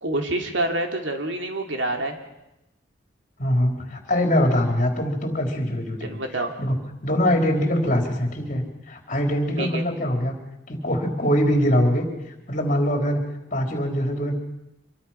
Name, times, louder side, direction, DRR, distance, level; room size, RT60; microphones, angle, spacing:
voice 1, 0.0-2.2 6.0-6.5 9.6-9.8, right 1 dB, 70° right, 3 dB, 2.8 m, -27 dB
voice 2, 3.4-6.2 6.6-6.7 7.0-10.4 10.7-12.1 12.5-13.2 13.5-14.4, equal, 40° left, 2 dB, 3.9 m, -23 dB
26.0 x 22.0 x 5.8 m, 0.90 s
head